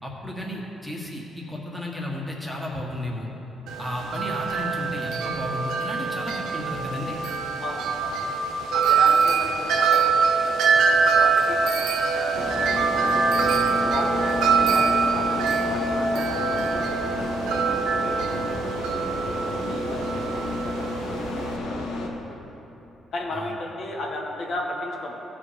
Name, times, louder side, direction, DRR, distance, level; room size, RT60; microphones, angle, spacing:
voice 1, 0.0-3.3 3.8-7.2 18.3-18.6 23.3-23.5, left 1 dB, 5° left, -3 dB, 1.8 m, -33 dB
Wind chime, 3.7-21.6, right 5 dB, 85° right, 0.8 m, -24 dB
voice 2, 7.6-8.3 8.7-13.4 13.8-17.4 18.0-22.4 23.1-25.2, left 1 dB, 60° left, -1 dB, 1.5 m, -35 dB
sound 1, 12.3-22.1, left 2 dB, 85° left, 1.1 m, -31 dB
15.0 x 5.1 x 5.2 m, 2.9 s
cardioid pair, 90°, 0 cm